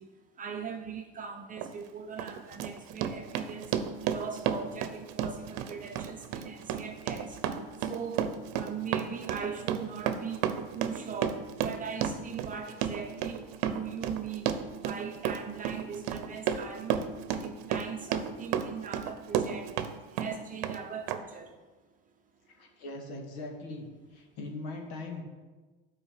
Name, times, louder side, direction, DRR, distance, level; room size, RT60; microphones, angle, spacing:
voice 1, 0.0-3.7 4.0-7.4 7.8-17.0 17.4-19.8 20.1-21.6, right 6 dB, 25° right, 3 dB, 0.8 m, -40 dB
Run, 1.6-1.7 2.2-19.9 20.2-20.8 21.1-21.2, right 9 dB, 70° right, 0.8 m, -32 dB
voice 2, 22.6-23.9 24.1-25.2, left 2 dB, 85° left, 2 dB, 2.0 m, -40 dB
9.3 x 4.8 x 6.7 m, 1.3 s
supercardioid pair, 125°, 30 cm